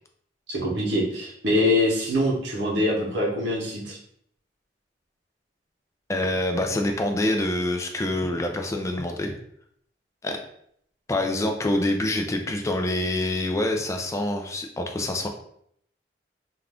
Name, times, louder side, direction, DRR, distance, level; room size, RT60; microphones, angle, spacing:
voice 1, 0.5-4.0, left 1 dB, 75° right, -3 dB, 0.9 m, -24 dB
voice 2, 6.1-9.3 10.2-10.4 11.1-15.3, left 1 dB, 15° left, 4 dB, 0.3 m, -26 dB
2.5 x 2.3 x 3.3 m, 0.68 s
head